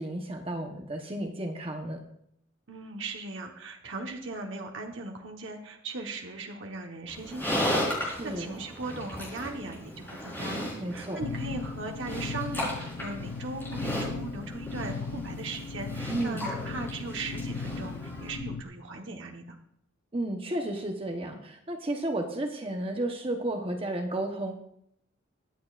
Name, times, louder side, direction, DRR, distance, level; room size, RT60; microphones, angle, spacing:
voice 1, 0.0-2.0 8.2-8.5 10.8-11.2 16.1-16.4 20.1-24.6, right 1 dB, 25° right, 3 dB, 1.0 m, -32 dB
voice 2, 2.7-19.6, right 3 dB, 65° right, 2 dB, 1.2 m, -38 dB
Livestock farm animals working animals, 7.1-18.3, left 1 dB, 10° left, 4.4 m, -36 dB
sound 1, 11.2-18.6, left 4 dB, 75° left, 0.5 m, -37 dB
22.5 x 8.6 x 2.5 m, 0.73 s
head